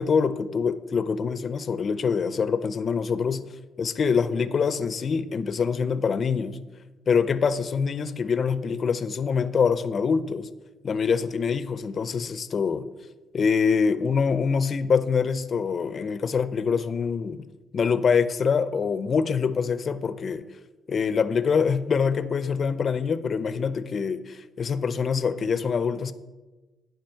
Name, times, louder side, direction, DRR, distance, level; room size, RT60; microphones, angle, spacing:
voice 1, 0.0-3.4 3.8-6.6 7.1-10.5 10.8-12.9 13.3-17.4 17.7-20.4 20.9-26.1, left 6 dB, 50° left, 14 dB, 0.5 m, -25 dB
10.5 x 4.8 x 4.5 m, 1.2 s
cardioid pair, 90°, 0 cm